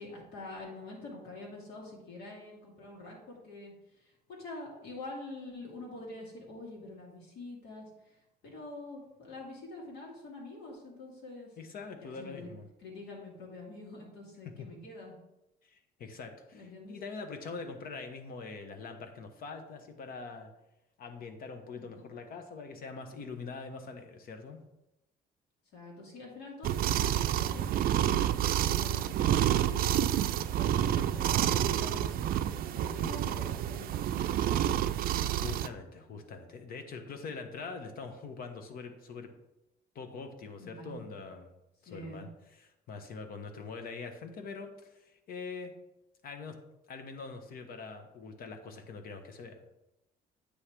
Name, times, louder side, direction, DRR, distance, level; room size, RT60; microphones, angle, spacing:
voice 1, 0.0-3.7 4.0-8.2 8.4-11.5 11.9-12.5 12.8-15.2 16.5-17.0 21.7-22.1 25.7-30.1 30.4-34.1 34.5-34.9 40.6-41.1 41.9-42.2, left 2 dB, 80° left, -2 dB, 2.4 m, -46 dB
voice 2, 11.6-12.7 14.6-14.7 15.6-20.5 21.0-24.6 35.4-39.3 39.9-41.5 41.8-45.7 46.2-46.5 46.9-49.6, left 4 dB, 60° left, 6 dB, 1.1 m, -43 dB
sound 1, 26.6-35.7, right 11 dB, 60° right, 0.4 m, -29 dB
8.6 x 3.3 x 5.9 m, 0.91 s
cardioid pair, 120°, 17 cm